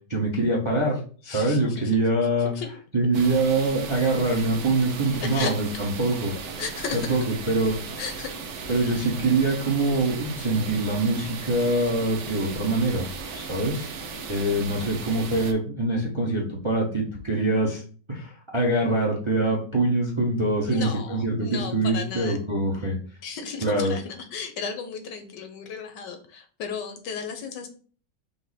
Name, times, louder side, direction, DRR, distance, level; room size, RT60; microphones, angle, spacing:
voice 1, 0.1-2.5 2.9-6.3 6.9-7.8 8.7-13.9 14.3-17.8 18.1-23.0 23.6-23.9, right 2 dB, 35° right, -2 dB, 0.5 m, -24 dB
voice 2, 1.3-2.0 2.5-2.7 5.1-5.5 6.6-7.2 8.0-8.3 20.7-22.4 23.2-27.7, left 6 dB, 75° left, 6 dB, 1.4 m, -34 dB
sound 1, 3.1-15.5, right 5 dB, 80° right, 1.3 m, -37 dB
5.2 x 2.0 x 4.0 m, 0.41 s
omnidirectional pair, 1.9 m